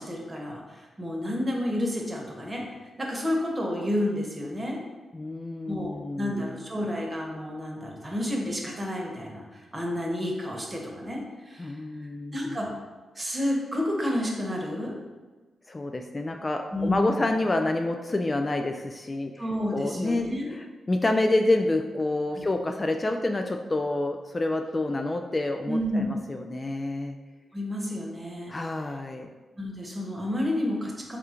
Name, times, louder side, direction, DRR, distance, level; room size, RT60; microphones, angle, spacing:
voice 1, 0.0-4.8 5.7-11.8 12.3-12.7 13.1-15.0 16.7-17.3 19.4-20.5 22.4-22.5 25.7-26.1 27.5-28.6 29.6-31.2, left 1 dB, 25° right, -1 dB, 1.0 m, -30 dB
voice 2, 5.1-6.6 11.6-12.6 15.7-19.3 19.7-27.2 28.5-29.3, left 2 dB, 30° left, 5 dB, 0.3 m, -28 dB
3.6 x 2.4 x 4.3 m, 1.3 s
supercardioid pair, 50°, 0 cm